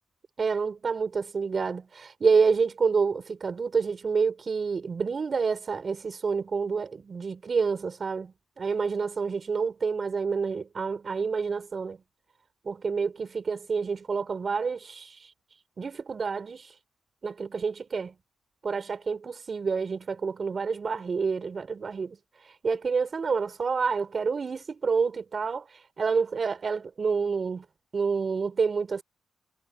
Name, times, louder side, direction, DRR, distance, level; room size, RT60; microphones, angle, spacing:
voice 1, 0.4-12.0 12.6-15.3 15.8-16.7 17.2-18.1 18.6-22.2 22.4-25.7 26.0-27.7 27.9-29.0, right 5 dB, 45° right, 5.8 m, -28 dB
cardioid pair, 90°, 0 cm